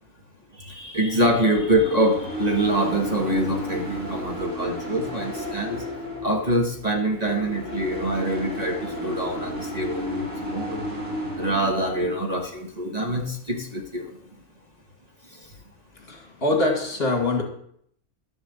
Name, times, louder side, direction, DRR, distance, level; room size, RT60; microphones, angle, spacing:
voice 1, 0.6-5.8 6.2-10.8 11.4-14.1, right 1 dB, 30° right, 2 dB, 1.4 m, -25 dB
sound 1, 1.1-12.2, equal, 85° right, 4.0 m, -33 dB
voice 2, 16.0-17.4, left 2 dB, 50° left, 2 dB, 2.4 m, -24 dB
12.0 x 7.0 x 7.3 m, 0.67 s
omnidirectional pair, 1.4 m